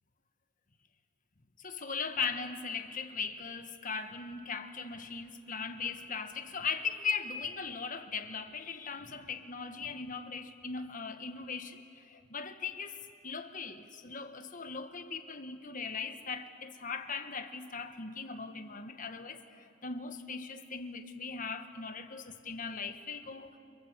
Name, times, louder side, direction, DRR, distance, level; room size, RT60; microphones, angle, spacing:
voice 1, 1.6-13.0 13.2-23.6, left 5 dB, 40° left, 1.4 m, -39 dB
29.0 x 25.0 x 8.2 m
head